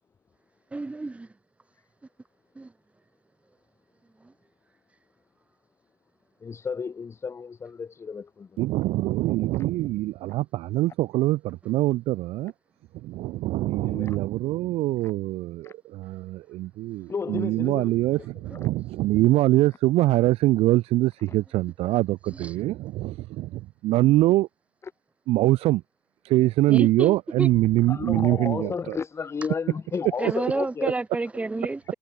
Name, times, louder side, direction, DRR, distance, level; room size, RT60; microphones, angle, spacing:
voice 1, 0.7-1.3 2.6-2.7 4.2-4.3 22.3-22.5 26.7-27.5 30.2-31.9, right 3 dB, 10° right, 2.4 m, -30 dB
voice 2, 6.4-8.7 13.6-14.2 15.0-15.1 15.6-15.7 17.1-18.7 27.9-30.9, left 5 dB, 25° left, 7.3 m, -33 dB
voice 3, 8.6-12.5 13.0-24.5 25.3-25.8 26.2-29.0, right 17 dB, 65° right, 2.6 m, -23 dB
cardioid pair, 140°, 11 cm